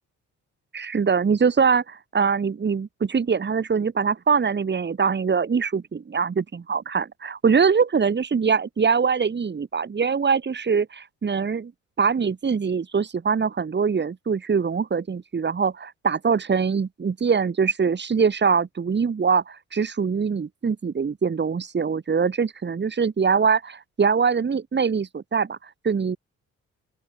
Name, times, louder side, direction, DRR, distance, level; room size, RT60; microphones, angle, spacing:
voice 1, 0.7-11.7 12.0-26.2, right 6 dB, 35° right, 3.7 m, -23 dB
open air
cardioid pair, 90°, 30 cm